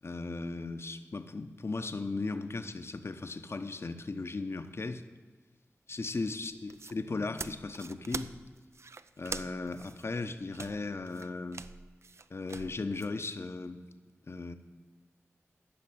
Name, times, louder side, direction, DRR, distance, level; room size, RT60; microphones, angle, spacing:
voice 1, 0.0-5.0 5.9-8.3 9.2-11.6 12.3-13.8 14.3-14.6, left 3 dB, 55° left, 9 dB, 0.8 m, -37 dB
sound 1, 6.5-13.1, right 4 dB, 60° right, 0.4 m, -44 dB
13.0 x 5.9 x 9.1 m, 1.4 s
cardioid pair, 40°, 5 cm